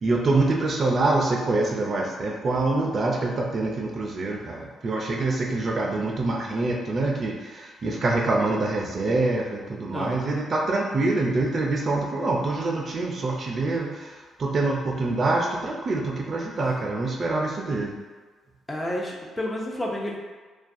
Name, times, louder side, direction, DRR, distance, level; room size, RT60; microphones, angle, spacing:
voice 1, 0.0-17.9, right 2 dB, 45° right, -1 dB, 0.4 m, -25 dB
voice 2, 9.9-10.4 18.7-20.2, left 1 dB, 20° left, -2 dB, 0.4 m, -31 dB
2.3 x 2.3 x 2.5 m, 1.4 s
cardioid pair, 90°, 0 cm